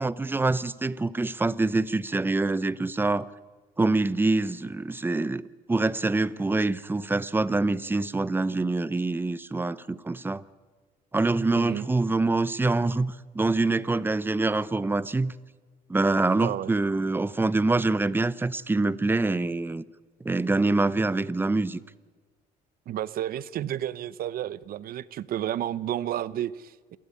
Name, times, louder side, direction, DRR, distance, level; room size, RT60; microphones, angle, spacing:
voice 1, 0.0-3.3 3.8-10.4 11.1-15.3 15.9-19.8 20.2-21.8, right 2 dB, 10° right, 0.7 m, -25 dB
voice 2, 11.6-11.9 16.4-16.7 22.9-27.0, right 11 dB, 60° right, 0.8 m, -31 dB
28.0 x 12.5 x 10.0 m
cardioid pair, 110°, 17 cm